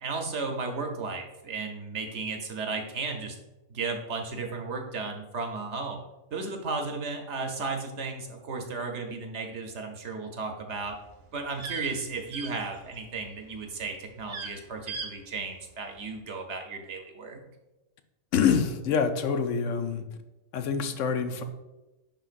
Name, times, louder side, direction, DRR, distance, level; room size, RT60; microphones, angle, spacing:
voice 1, 0.0-3.4 3.7-6.1 6.3-11.0 11.3-17.4, right 4 dB, 60° right, 3 dB, 1.0 m, -34 dB
sound 1, 10.8-13.2 13.5-13.8 14.2-14.5 14.9-15.1 15.4-15.5, right 4 dB, 45° right, 0.6 m, -39 dB
voice 2, 18.3-20.1 20.5-21.4, left 6 dB, 70° left, 8 dB, 0.9 m, -26 dB
10.5 x 3.7 x 2.5 m, 1.0 s
omnidirectional pair, 1.4 m